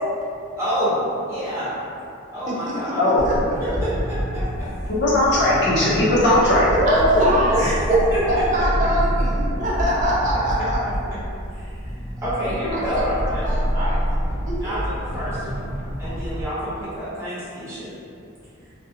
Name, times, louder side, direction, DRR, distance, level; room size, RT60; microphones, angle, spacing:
voice 1, 0.6-1.0 1.3-1.7 2.3-3.1 3.6-4.7 6.6-8.7 11.5-13.4 13.7-13.9 14.6-15.7 16.0-17.9, equal, 10° right, -13 dB, 0.8 m, -25 dB
voice 2, 2.5-3.3 3.7-4.0 6.9-7.6 8.3-10.8 12.7-13.0 13.4-14.0 14.5-14.7, right 1 dB, 35° right, -6 dB, 0.4 m, -25 dB
sound 1, 3.2-16.4, equal, 80° left, 0.9 m, -27 dB
voice 3, 4.9-6.7, left 1 dB, 50° left, -8 dB, 0.6 m, -18 dB
2.4 x 2.1 x 2.7 m, 2.5 s
head